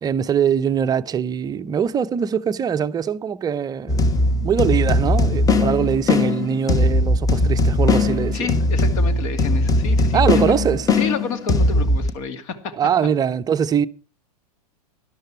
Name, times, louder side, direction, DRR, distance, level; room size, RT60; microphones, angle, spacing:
voice 1, 0.0-4.1 4.4-8.6 10.1-10.9 12.8-13.9, right 8 dB, 20° right, 0.6 m, -22 dB
sound 1, 3.9-12.1, left 2 dB, 15° left, 1.3 m, -19 dB
voice 2, 8.3-10.5 10.9-12.7, left 5 dB, 55° left, 2.4 m, -30 dB
13.0 x 11.5 x 4.5 m
hypercardioid pair, 100°, 20 cm